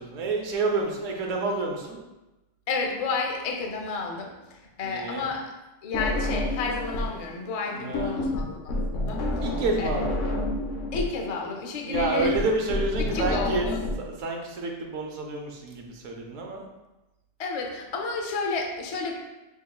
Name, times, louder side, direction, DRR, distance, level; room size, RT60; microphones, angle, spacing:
voice 1, 0.0-2.0 4.8-5.3 7.7-8.3 9.4-10.2 11.8-13.7 14.0-16.6, right 3 dB, 85° right, 1 dB, 1.1 m, -29 dB
voice 2, 2.7-5.5 5.8-9.2 9.8-9.9 10.9-12.3 13.1-13.8 17.4-19.1, left 4 dB, 50° left, 1 dB, 0.4 m, -31 dB
sound 1, 5.9-7.2 7.5-13.9, left 1 dB, 75° left, 1.0 m, -29 dB
6.0 x 2.9 x 2.3 m, 1.0 s
omnidirectional pair, 1.3 m